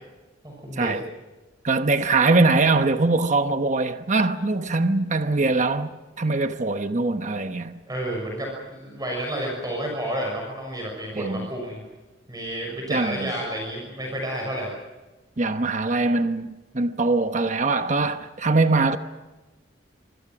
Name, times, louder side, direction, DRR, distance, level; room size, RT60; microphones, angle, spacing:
voice 1, 0.4-0.9 7.9-11.8 12.3-14.7, right 1 dB, 20° right, 6.2 m, -30 dB
voice 2, 1.6-5.9 6.2-7.8 11.1-11.5 12.9-13.3 15.4-19.0, right 3 dB, 40° right, 1.0 m, -22 dB
26.0 x 25.0 x 6.1 m
head